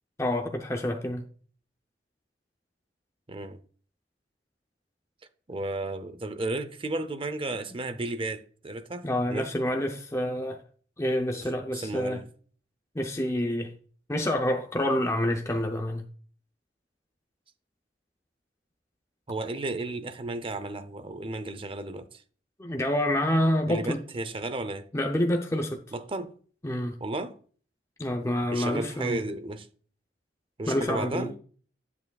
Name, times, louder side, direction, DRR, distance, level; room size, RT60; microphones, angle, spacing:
voice 1, 0.2-1.3 9.0-10.6 11.0-12.2 12.9-13.7 14.1-16.0 22.6-24.0 24.9-25.8 26.6-27.0 28.0-29.2 30.7-31.3, left 1 dB, 15° left, 0.6 m, -27 dB
voice 2, 3.3-3.6 5.5-9.5 11.4-12.2 19.3-22.2 23.6-24.9 25.9-26.4 27.0-27.4 28.5-29.7 30.6-31.3, right 2 dB, 30° right, 0.6 m, -33 dB
9.2 x 8.3 x 2.3 m
head